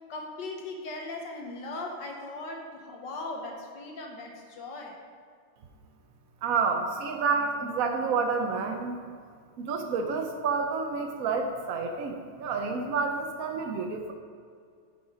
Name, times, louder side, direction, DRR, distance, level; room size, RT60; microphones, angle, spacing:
voice 1, 0.1-5.0, left 2 dB, 65° left, 1 dB, 1.5 m, -38 dB
voice 2, 6.4-9.0 9.6-14.1, right 5 dB, 75° right, 4 dB, 0.7 m, -29 dB
9.8 x 5.5 x 4.9 m, 2.1 s
omnidirectional pair, 2.3 m